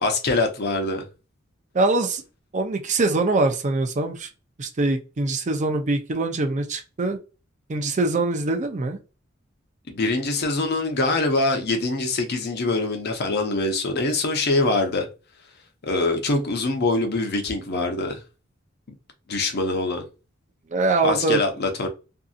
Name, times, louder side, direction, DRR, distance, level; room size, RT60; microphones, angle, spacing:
voice 1, 0.0-1.0 9.9-15.1 15.8-18.2 19.3-20.0 21.0-21.9, left 2 dB, 50° left, 0.7 m, -24 dB
voice 2, 1.7-2.2 2.5-4.3 4.6-7.2 7.7-9.0 20.7-21.4, right 2 dB, 35° right, 0.5 m, -23 dB
2.7 x 2.6 x 2.4 m
head